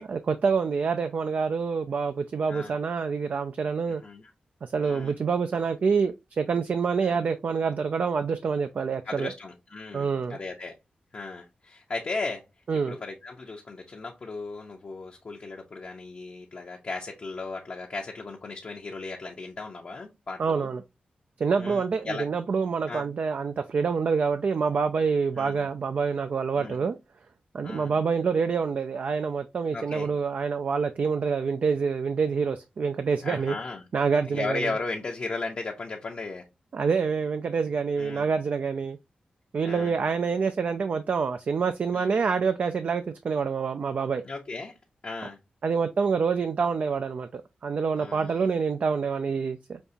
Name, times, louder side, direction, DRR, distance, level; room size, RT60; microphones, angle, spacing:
voice 1, 0.0-4.0 4.6-9.3 9.9-10.4 12.7-13.0 20.4-20.8 21.4-27.0 27.5-33.6 33.9-34.8 36.7-39.0 39.5-44.2 45.6-49.8, right 5 dB, 60° right, 0.3 m, -27 dB
voice 2, 3.9-4.2 4.8-5.1 7.0-7.2 9.1-10.8 11.1-12.4 12.9-20.7 21.6-22.3 22.9-23.0 25.4-25.6 26.6-26.8 27.6-27.9 29.7-30.1 33.2-33.8 34.3-36.4 38.0-38.2 39.6-39.9 41.9-42.1 44.2-44.7 45.0-45.4 48.0-48.5, left 3 dB, 50° left, 0.7 m, -36 dB
5.3 x 2.4 x 2.6 m
wide cardioid pair, 85°, 3 cm